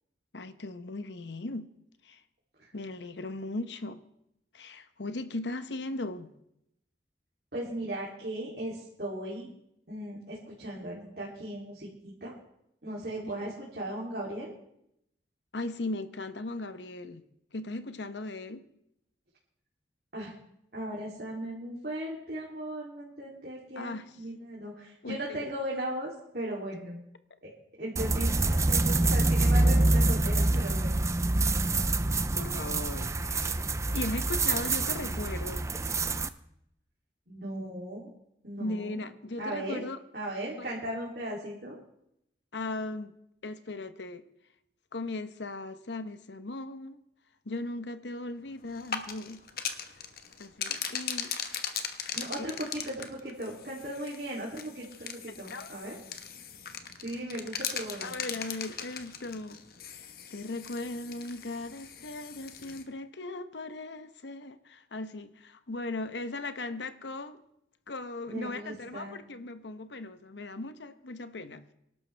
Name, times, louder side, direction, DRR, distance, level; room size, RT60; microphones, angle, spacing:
voice 1, 0.3-1.7 2.0-2.2 2.7-4.0 4.5-6.3 13.4-13.5 15.5-17.2 17.5-18.6 23.8-24.2 25.0-25.5 32.4-33.6 33.9-35.7 38.6-40.0 40.6-40.7 42.5-43.1 43.4-44.2 44.9-47.0 47.4-49.5 50.4-51.3 52.4-52.5 55.3-55.7 58.0-59.6 60.3-67.4 67.9-71.6, left 2 dB, 85° left, 0.9 m, -38 dB
voice 2, 7.5-9.5 9.9-12.4 12.8-14.5 20.1-20.3 20.7-27.0 27.4-27.5 27.8-31.1 37.3-38.1 38.4-39.0 39.4-39.9 40.1-41.8 52.1-56.0 57.0-58.1 68.3-69.2, right 1 dB, 60° right, 3.0 m, -37 dB
sound 1, 28.0-36.3, right 2 dB, 15° right, 0.5 m, -26 dB
sound 2, 48.7-62.8, left 7 dB, 55° left, 1.1 m, -39 dB
25.0 x 12.0 x 3.4 m
head